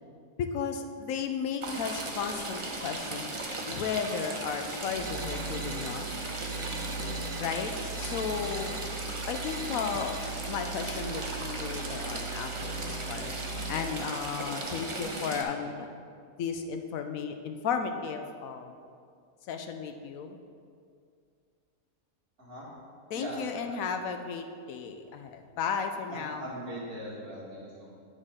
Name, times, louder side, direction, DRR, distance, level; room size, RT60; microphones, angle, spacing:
voice 1, 0.4-3.3 3.7-6.1 7.4-8.8 9.3-10.2 10.5-13.3 13.7-15.9 16.4-18.8 19.5-20.4 23.1-26.5, left 6 dB, 75° left, 6 dB, 1.0 m, -34 dB
Stream / Trickle dribble, 1.6-15.4, right 2 dB, 30° right, 0.5 m, -37 dB
sound 1, 4.9-13.9, right 4 dB, 40° left, 1.8 m, -40 dB
sound 2, 5.0-5.9 6.5-7.4 7.9-8.8 9.3-10.2, right 3 dB, 50° right, 1.4 m, -47 dB
voice 2, 23.1-23.8 26.1-27.9, equal, 70° right, -7 dB, 2.6 m, -40 dB
9.3 x 6.5 x 3.7 m, 2.2 s
omnidirectional pair, 1.6 m